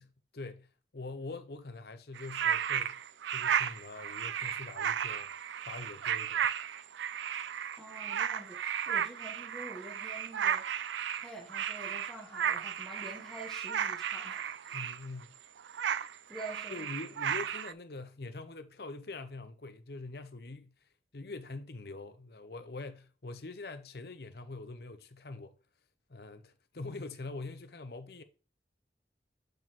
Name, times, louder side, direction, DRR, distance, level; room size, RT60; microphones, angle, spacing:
voice 1, 0.0-3.0 3.3-5.3 5.6-6.5 14.7-15.4 16.7-20.7 21.1-25.6 26.1-28.2, left 3 dB, 60° left, 0.8 m, -44 dB
sound 1, 2.2-15.2 15.6-17.7, right 9 dB, 90° right, 0.4 m, -34 dB
voice 2, 7.8-14.9 15.8-16.0 16.3-16.8, right 1 dB, 5° left, 1.5 m, -47 dB
7.8 x 5.0 x 3.7 m
head